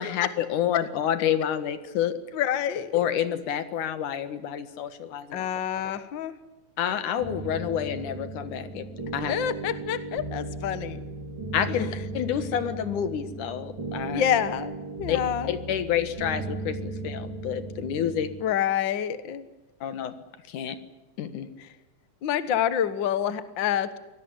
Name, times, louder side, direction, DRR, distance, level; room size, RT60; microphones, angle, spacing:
voice 1, 0.0-2.2 2.9-5.5 6.8-8.9 9.1-9.3 11.5-14.2 15.1-15.2 15.5-18.3 19.8-20.1 20.5-20.8 21.2-21.5, left 9 dB, 85° left, 11 dB, 3.1 m, -28 dB
voice 2, 2.3-2.9 5.3-6.3 9.3-11.0 11.7-11.8 14.1-14.7 15.0-15.5 18.4-19.5 22.2-24.0, left 10 dB, 50° left, 13 dB, 1.7 m, -27 dB
sound 1, 7.2-18.4, right 3 dB, 40° right, 5.8 m, -36 dB
24.5 x 18.5 x 9.9 m, 1.1 s
omnidirectional pair, 3.4 m